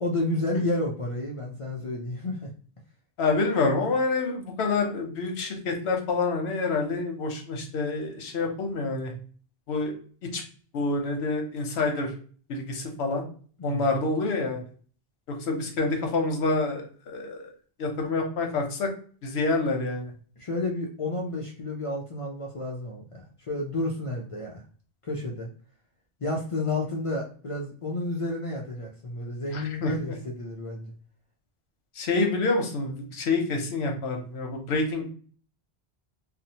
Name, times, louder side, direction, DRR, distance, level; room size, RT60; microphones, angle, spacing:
voice 1, 0.0-2.5 13.6-13.9 20.4-24.6 25.0-25.5 26.2-30.9, left 2 dB, 55° left, -1 dB, 0.4 m, -31 dB
voice 2, 3.2-9.1 9.7-9.9 10.3-10.4 10.7-12.1 12.5-13.2 13.6-14.6 15.3-17.5 17.8-18.9 19.2-20.1 29.5-30.2 31.9-35.1, left 3 dB, 85° left, 3 dB, 0.9 m, -27 dB
2.7 x 2.0 x 2.7 m, 0.43 s
omnidirectional pair, 1.1 m